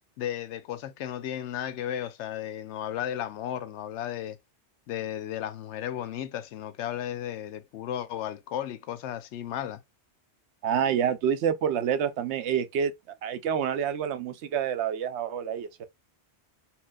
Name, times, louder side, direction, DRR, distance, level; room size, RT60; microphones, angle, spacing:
voice 1, 0.2-4.4 4.9-9.8, left 11 dB, 80° left, 0.9 m, -34 dB
voice 2, 10.6-12.9 13.2-15.8, right 8 dB, 75° right, 0.9 m, -27 dB
4.3 x 2.9 x 2.3 m
omnidirectional pair, 1.2 m